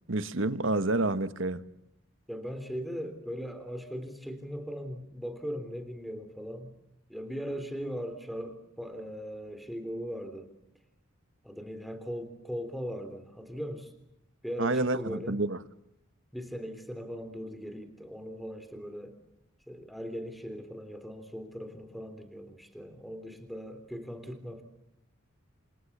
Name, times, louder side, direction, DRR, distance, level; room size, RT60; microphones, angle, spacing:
voice 1, 0.1-1.6 14.6-15.6, right 2 dB, 65° right, 1.4 m, -28 dB
voice 2, 2.3-6.7 7.1-10.5 11.4-13.9 14.4-15.4 16.3-19.2 19.7-24.6, equal, ahead, 3.3 m, -39 dB
28.5 x 28.0 x 7.3 m
head